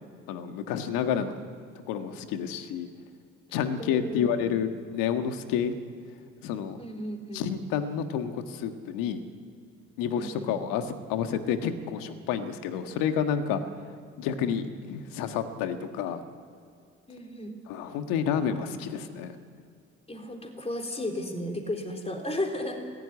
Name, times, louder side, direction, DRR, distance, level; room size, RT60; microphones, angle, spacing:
voice 1, 0.3-1.4 1.9-2.9 3.5-5.7 6.4-6.8 7.3-9.2 10.0-13.6 14.2-16.2 17.7-19.4, left 8 dB, 75° left, 8 dB, 1.6 m, -29 dB
voice 2, 3.8-4.5 6.8-7.5 10.1-10.6 17.1-17.6 20.1-22.8, left 1 dB, 20° left, 3 dB, 3.8 m, -34 dB
20.0 x 16.5 x 9.6 m, 2.4 s
hypercardioid pair, 55°, 34 cm